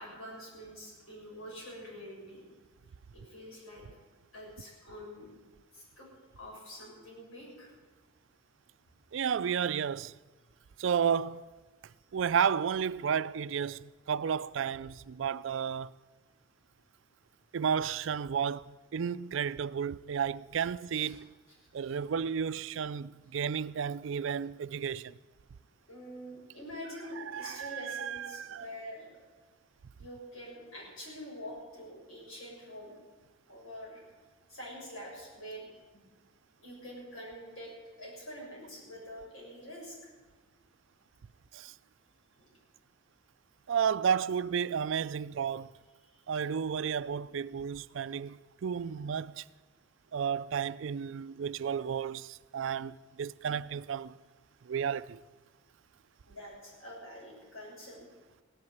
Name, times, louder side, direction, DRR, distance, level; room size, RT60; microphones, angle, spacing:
voice 1, 0.0-2.4 3.1-3.8 4.3-5.3 5.7-7.7 20.9-21.2 21.6-22.0 25.9-29.2 30.0-33.0 33.5-34.0 34.5-35.7 36.6-37.7 38.0-40.1 42.4-42.5 46.0-46.2 56.3-58.1, equal, 90° left, 6.8 m, -46 dB
voice 2, 9.1-10.2 10.8-11.4 12.1-15.9 17.5-21.3 21.7-25.2 27.2-28.7 41.5-41.7 43.7-45.7 46.3-49.4 50.1-54.1 54.6-55.2, right 7 dB, 70° right, 0.4 m, -32 dB
16.5 x 10.5 x 8.0 m
head